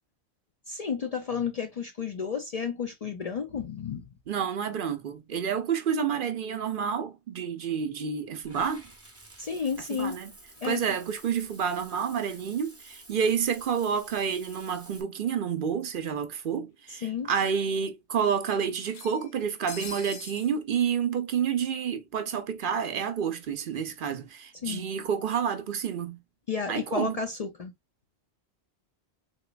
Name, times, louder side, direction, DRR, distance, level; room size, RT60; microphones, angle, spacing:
voice 1, 0.7-4.1 9.4-10.2 10.6-10.8 16.9-17.3 24.6-24.8 26.5-27.7, left 6 dB, 50° left, 0.5 m, -32 dB
voice 2, 4.3-8.9 9.9-10.3 10.6-26.2 26.7-27.2, right 7 dB, 60° right, 0.7 m, -29 dB
Water / Bathtub (filling or washing), 8.4-15.0, right 2 dB, 15° right, 0.6 m, -51 dB
sound 1, 15.4-15.5 15.8-15.9 17.0-17.1 17.4-17.5 18.8-20.5, left 4 dB, 80° left, 1.2 m, -43 dB
3.8 x 2.9 x 2.2 m
omnidirectional pair, 1.1 m